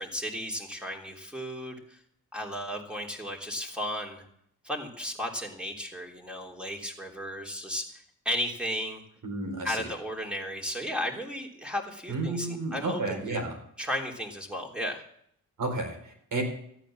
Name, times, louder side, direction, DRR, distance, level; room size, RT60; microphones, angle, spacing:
voice 1, 0.0-2.0 2.3-4.2 4.6-9.0 9.6-13.4 13.8-15.0, equal, 5° right, 1 dB, 3.3 m, -34 dB
voice 2, 9.2-9.8 12.1-13.6 15.6-16.4, right 3 dB, 70° right, 4 dB, 4.5 m, -32 dB
14.5 x 9.1 x 7.5 m, 0.69 s
cardioid pair, 85°, 34 cm